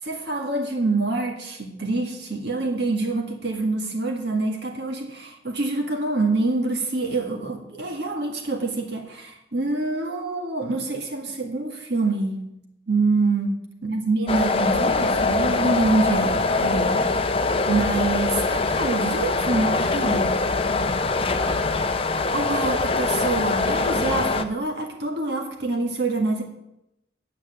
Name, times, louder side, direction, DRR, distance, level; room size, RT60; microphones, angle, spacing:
voice 1, 0.0-12.4 12.9-13.6 13.8-17.1 17.7-20.4 22.3-26.4, right 3 dB, 60° right, 2 dB, 1.8 m, -26 dB
sound 1, 14.3-24.4, left 3 dB, 30° left, 0.6 m, -23 dB
9.3 x 7.6 x 7.7 m, 0.85 s
head